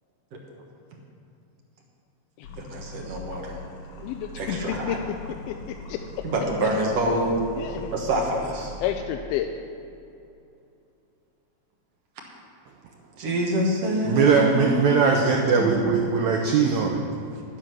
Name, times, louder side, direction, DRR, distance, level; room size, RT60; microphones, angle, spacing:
sound 1, 2.4-8.9, equal, 65° left, 2.8 m, -41 dB
voice 1, 2.6-3.6 4.4-5.0 6.2-7.4 7.9-8.7 13.2-14.8 15.6-15.8, right 1 dB, 55° right, 0 dB, 2.1 m, -26 dB
voice 2, 4.0-5.0 5.5-6.0 7.5-7.9 8.8-9.5, left 11 dB, 85° left, 5 dB, 2.4 m, -30 dB
voice 3, 14.0-17.0, right 5 dB, 90° right, 1 dB, 1.6 m, -20 dB
11.5 x 10.5 x 6.2 m, 2.6 s
omnidirectional pair, 4.4 m